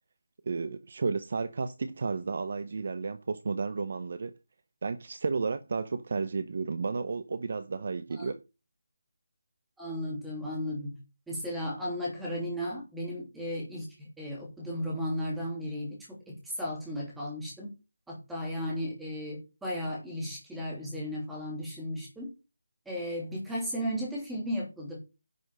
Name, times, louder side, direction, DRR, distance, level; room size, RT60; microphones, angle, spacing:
voice 1, 0.5-4.3 4.8-8.4, right 4 dB, 35° right, 0.7 m, -32 dB
voice 2, 9.8-11.0 11.3-16.0 16.3-17.7 18.1-22.3 22.8-25.0, equal, ahead, 3.1 m, -35 dB
10.5 x 6.0 x 6.6 m
figure-of-eight pair, 180°, 0 cm